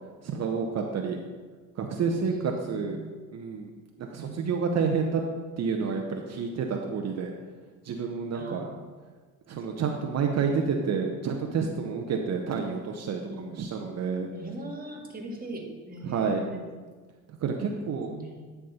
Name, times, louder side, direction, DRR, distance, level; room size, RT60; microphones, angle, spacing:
voice 1, 0.2-1.2 1.8-3.0 3.3-3.7 4.0-5.2 5.6-7.3 7.8-8.6 9.5-14.3 16.0-16.4 17.4-18.1, right 5 dB, 40° right, 2 dB, 0.9 m, -29 dB
voice 2, 2.2-3.1 4.1-4.6 8.3-8.8 9.5-9.6 13.3-13.6 14.3-16.6 17.7-18.5, right 2 dB, 20° right, 1 dB, 1.9 m, -41 dB
10.5 x 3.6 x 5.6 m, 1.4 s
hypercardioid pair, 75°, 38 cm